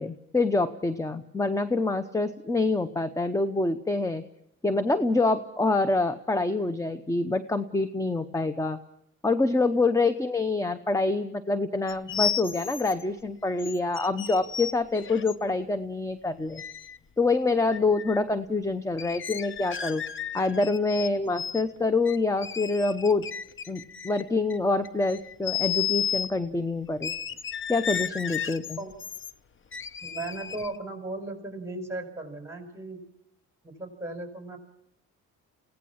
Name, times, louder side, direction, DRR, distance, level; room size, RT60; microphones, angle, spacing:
voice 1, 0.0-4.2 4.6-8.8 9.2-16.6 17.2-20.0 20.3-23.3 23.7-27.1 27.7-28.8, left 3 dB, 10° left, 12 dB, 0.8 m, -26 dB
sound 1, 11.9-13.0 13.6-15.4 16.6-17.0 17.7-18.2 19.0-21.1 21.4-21.6 22.1-24.6 24.8-26.3 27.0-29.3 29.7-30.8, left 8 dB, 40° left, 0.9 m, -33 dB
voice 2, 30.0-33.0 33.6-34.6, right 2 dB, 10° right, 4 dB, 5.3 m, -36 dB
23.5 x 17.0 x 7.3 m, 0.78 s
cardioid pair, 90°, 30 cm